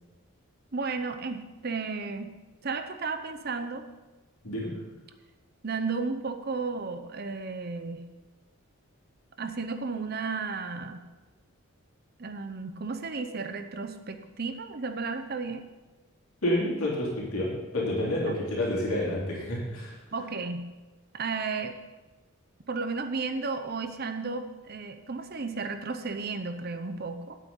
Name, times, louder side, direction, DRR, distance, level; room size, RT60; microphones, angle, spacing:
voice 1, 0.7-2.3 2.6-3.8 5.6-8.0 9.4-11.1 12.2-15.6 18.3-18.4 20.1-20.6 21.1-21.8 22.7-27.4, right 4 dB, 45° right, 8 dB, 0.7 m, -33 dB
voice 2, 16.4-20.0, left 1 dB, 85° left, -5 dB, 3.3 m, -29 dB
9.6 x 8.4 x 5.4 m, 1.2 s
head